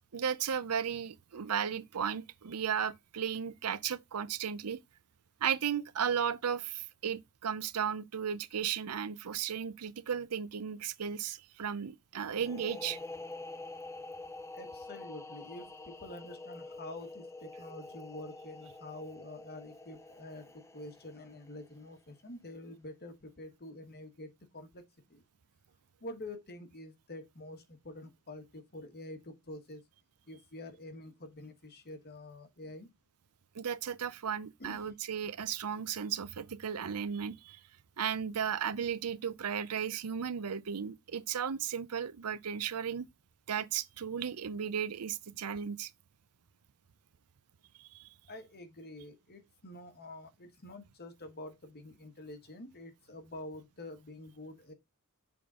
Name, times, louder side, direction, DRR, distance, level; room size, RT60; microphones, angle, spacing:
voice 1, 0.1-4.8 5.4-13.0 33.5-37.6 38.0-43.1 43.5-45.9 47.8-48.1, right 8 dB, 90° right, 0.6 m, -35 dB
sound 1, 12.3-21.8, left 2 dB, 15° left, 0.6 m, -46 dB
voice 2, 14.5-25.2 26.0-29.8 30.2-32.9 34.6-34.9 48.3-54.7, left 1 dB, 45° left, 1.5 m, -47 dB
6.9 x 3.8 x 5.0 m
head